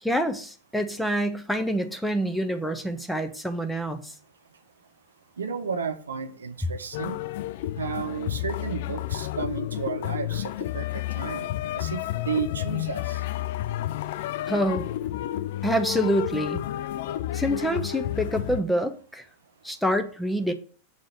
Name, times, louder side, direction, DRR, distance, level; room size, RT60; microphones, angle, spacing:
voice 1, 0.0-4.1 14.5-14.9 15.6-16.6 17.3-19.2 19.6-20.5, equal, ahead, 7 dB, 0.8 m, -26 dB
voice 2, 5.3-7.2 7.7-13.3, right 6 dB, 70° right, 8 dB, 0.8 m, -33 dB
sound 1, 6.9-18.6, left 14 dB, 50° left, 0.3 m, -31 dB
7.3 x 3.9 x 6.5 m, 0.40 s
figure-of-eight pair, 90°, 0 cm